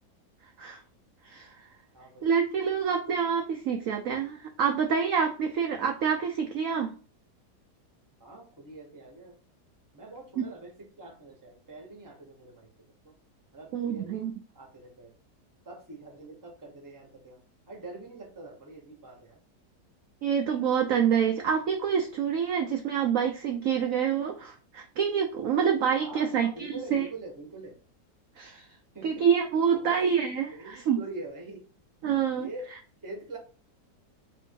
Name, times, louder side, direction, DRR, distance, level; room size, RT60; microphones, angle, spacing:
voice 1, 1.2-1.7 2.2-6.9 10.4-10.5 13.7-14.3 20.2-27.1 28.4-28.7 29.0-31.0 32.0-32.5, right 7 dB, 70° right, 4 dB, 0.8 m, -27 dB
voice 2, 1.9-2.4 8.2-9.3 9.9-12.7 13.0-13.1 13.5-14.2 14.5-15.1 15.6-19.4 26.0-27.7 28.9-29.3 29.7-30.0 30.5-31.6 32.3-32.7 33.0-33.4, right 2 dB, 15° right, 1 dB, 0.8 m, -44 dB
3.5 x 2.7 x 4.4 m, 0.38 s
omnidirectional pair, 1.9 m